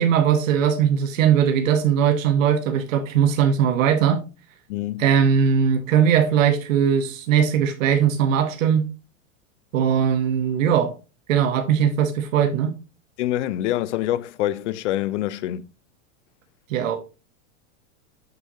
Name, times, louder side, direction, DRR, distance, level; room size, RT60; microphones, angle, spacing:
voice 1, 0.0-4.2 5.0-8.9 9.7-10.9 11.3-12.7 16.7-17.0, right 8 dB, 75° right, 1.2 m, -19 dB
voice 2, 4.7-5.1 13.2-15.6, left 13 dB, 65° left, 0.6 m, -25 dB
6.7 x 6.3 x 2.8 m
supercardioid pair, 170°, 39 cm